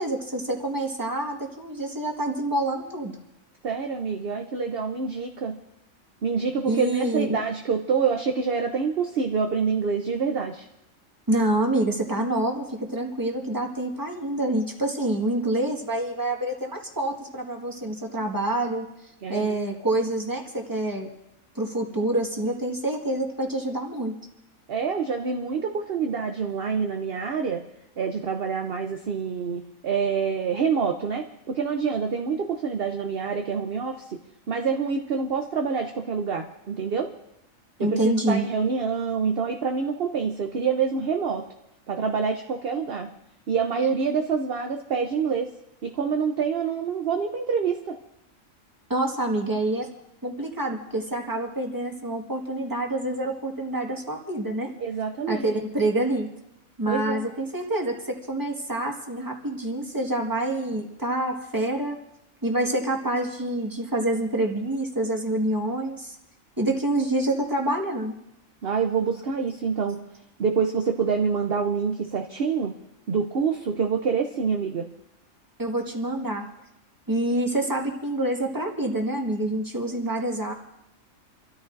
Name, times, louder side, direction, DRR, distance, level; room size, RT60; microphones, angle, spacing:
voice 1, 0.0-3.1 6.6-7.4 11.3-18.9 19.3-21.1 21.5-24.2 37.8-38.4 48.9-49.9 50.2-54.7 55.3-56.3 56.8-62.0 62.4-66.1 66.6-68.1 75.6-76.5 77.1-80.5, right 1 dB, 15° right, 0 dB, 1.7 m, -27 dB
voice 2, 3.6-5.6 6.2-10.7 19.2-19.6 24.7-27.6 28.0-34.2 34.5-37.1 37.8-41.5 41.9-43.1 43.5-45.5 45.8-48.0 54.8-55.5 56.9-57.3 68.6-70.0 70.4-72.8 73.1-74.9, right 5 dB, 50° right, 4 dB, 0.9 m, -26 dB
30.0 x 13.5 x 2.6 m, 0.85 s
omnidirectional pair, 1.4 m